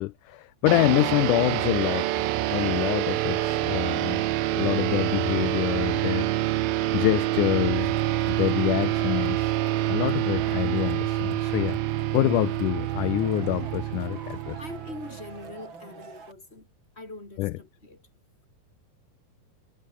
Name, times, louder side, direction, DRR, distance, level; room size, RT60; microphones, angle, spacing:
voice 1, 0.0-4.2 4.5-6.3 6.9-8.0 8.3-9.5 9.9-11.8 12.1-14.6 17.4-17.5, left 18 dB, 75° left, 1.9 m, -26 dB
sound 1, 0.7-15.5, right 15 dB, 80° right, 2.8 m, -27 dB
sound 2, 0.8-1.3 1.9-2.4 3.2-3.8 4.7-5.3 6.1-6.5 7.8-8.3 8.9-9.4 10.1-10.7, left 5 dB, 45° left, 4.6 m, -49 dB
Male speech man speaking / Shout / Clapping, 7.9-16.3, right 4 dB, 35° right, 4.0 m, -46 dB
voice 2, 14.6-16.7 17.0-18.0, left 2 dB, 15° left, 5.5 m, -42 dB
omnidirectional pair, 4.2 m